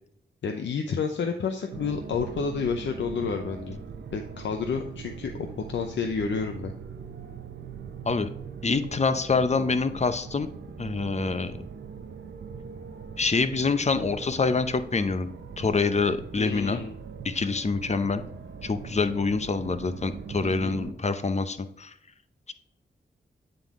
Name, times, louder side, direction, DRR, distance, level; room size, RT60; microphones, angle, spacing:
voice 1, 0.4-3.8 4.1-6.7 16.4-16.9 20.4-20.8, left 5 dB, 80° left, 4 dB, 0.6 m, -30 dB
sound 1, 1.7-20.9, right 6 dB, 80° right, 0.7 m, -41 dB
voice 2, 8.6-10.5 10.8-11.6 13.2-15.3 15.6-16.8 17.2-18.2 18.6-21.9, left 4 dB, 35° left, 10 dB, 0.7 m, -26 dB
8.8 x 3.8 x 3.6 m, 0.72 s
cardioid pair, 55°, 19 cm